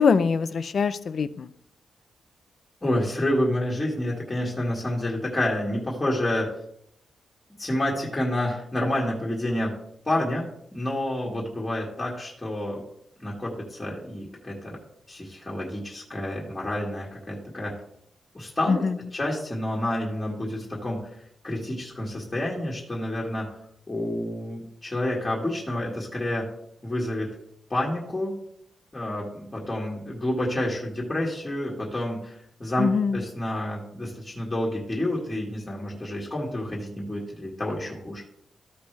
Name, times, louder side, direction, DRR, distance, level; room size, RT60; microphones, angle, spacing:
voice 1, 0.0-1.5 18.7-19.0 32.8-33.2, left 5 dB, 45° left, 14 dB, 0.5 m, -23 dB
voice 2, 2.8-6.5 7.6-9.7 10.1-12.8 13.2-14.8 15.1-17.7 18.3-18.8 19.1-21.1 21.4-23.5 23.9-26.5 26.8-27.3 27.7-28.3 28.9-38.2, left 1 dB, 15° left, -4 dB, 1.8 m, -29 dB
14.0 x 5.3 x 3.3 m, 0.70 s
wide cardioid pair, 175°, 0 cm